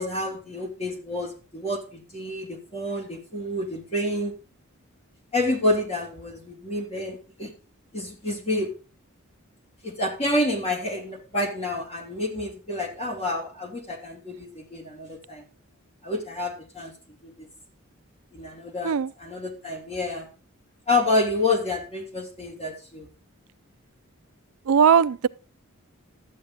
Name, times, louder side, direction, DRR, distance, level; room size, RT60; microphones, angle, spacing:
voice 1, 0.0-4.3 5.3-7.5 7.9-8.7 9.8-15.4 16.0-16.9 17.2-17.5 18.3-20.3 20.9-23.1, left 2 dB, 30° left, 2.8 m, -28 dB
voice 2, 24.7-25.3, right 7 dB, 70° right, 0.4 m, -19 dB
12.0 x 8.9 x 4.0 m
head